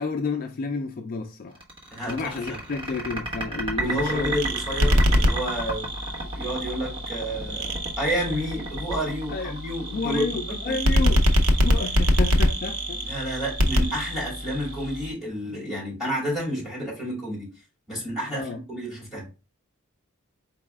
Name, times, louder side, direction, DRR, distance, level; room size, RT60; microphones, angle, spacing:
voice 1, 0.0-1.6 2.1-4.3 9.3-9.6 9.9-11.2 11.6-13.0 18.3-18.6, left 4 dB, 40° left, 0.3 m, -31 dB
sound 1, 1.5-10.2, right 1 dB, 25° right, 1.1 m, -32 dB
voice 2, 1.9-2.6 3.7-5.9 6.3-7.7 8.0-10.3 10.7-10.8 11.0-11.1 13.0-17.5 17.9-19.3, equal, ahead, 2.6 m, -30 dB
sound 2, 3.8-15.1, equal, 80° right, 0.7 m, -25 dB
4.6 x 4.0 x 2.3 m
head